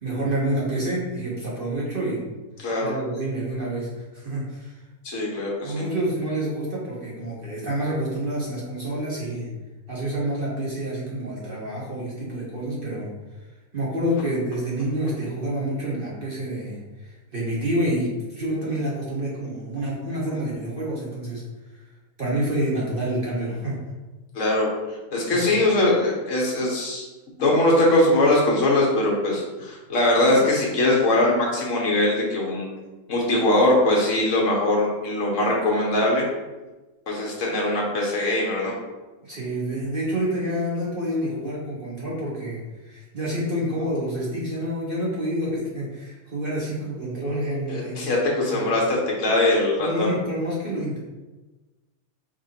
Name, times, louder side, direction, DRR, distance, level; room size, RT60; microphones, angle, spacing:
voice 1, 0.0-2.2 2.8-4.8 5.6-9.5 9.9-13.1 13.7-21.4 22.2-23.8 25.3-25.6 39.2-48.0 48.5-48.7 49.4-49.5 49.8-51.0, right 1 dB, 45° right, -5 dB, 0.9 m, -28 dB
voice 2, 2.6-2.9 5.0-5.8 24.3-24.7 25.1-27.1 27.4-32.7 33.1-36.2 37.1-38.7 47.7-50.1, left 1 dB, 60° left, -3 dB, 1.3 m, -21 dB
4.7 x 3.0 x 2.8 m, 1.2 s
omnidirectional pair, 1.5 m